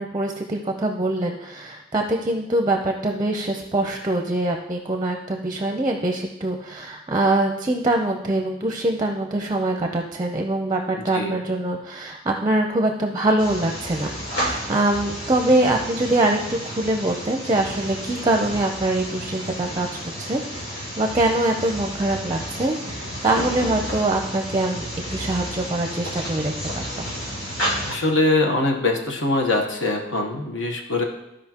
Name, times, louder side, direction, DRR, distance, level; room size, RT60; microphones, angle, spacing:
voice 1, 0.0-14.1 14.5-19.9 20.2-24.8 25.1-27.1, right 2 dB, 20° right, 3 dB, 0.6 m, -23 dB
sound 1, 13.4-27.9, equal, 90° left, 2.8 m, -31 dB
voice 2, 27.9-31.0, left 2 dB, 65° left, 2 dB, 1.1 m, -22 dB
14.0 x 5.1 x 2.9 m, 0.91 s
head